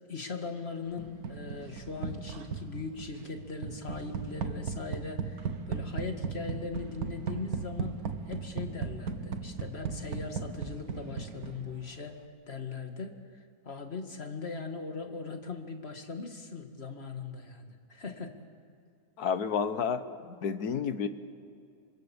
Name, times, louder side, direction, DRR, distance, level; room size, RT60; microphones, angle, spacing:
voice 1, 0.1-12.2 12.5-18.4, left 4 dB, 40° left, 5 dB, 2.3 m, -40 dB
sound 1, 1.0-11.9, right 5 dB, 70° right, 1.6 m, -37 dB
voice 2, 19.2-21.1, left 6 dB, 75° left, 11 dB, 1.7 m, -31 dB
26.5 x 25.5 x 7.3 m, 2.4 s
omnidirectional pair, 1.6 m